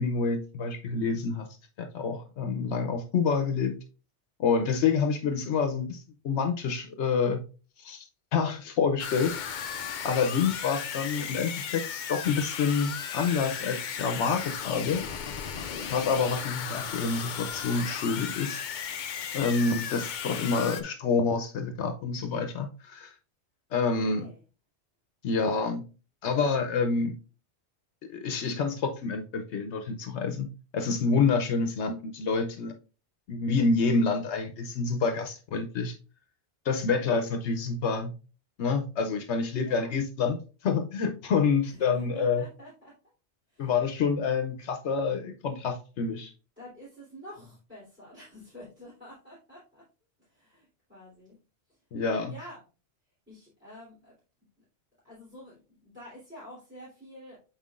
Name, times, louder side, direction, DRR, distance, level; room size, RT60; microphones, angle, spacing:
voice 1, 0.0-1.5 1.8-3.8 4.4-7.4 7.8-8.0 8.3-9.4 10.0-15.0 15.9-18.6 19.3-23.1 23.7-24.3 25.2-25.8 26.2-27.2 28.1-32.7 33.3-35.9 36.6-38.1 38.6-40.4 40.6-42.4 43.6-46.3 51.9-52.3, left 5 dB, 75° left, 6 dB, 1.0 m, -27 dB
sound 1, 9.0-20.8, left 7 dB, 55° left, 0.6 m, -35 dB
voice 2, 23.8-24.4 39.6-39.9 41.6-42.9 43.5-43.7 46.6-49.8 50.3-51.3 51.7-51.8 52.3-52.6 53.3-54.1 55.0-57.4, left 1 dB, 10° right, -9 dB, 3.2 m, -48 dB
7.1 x 5.5 x 2.4 m, 0.34 s
omnidirectional pair, 1.2 m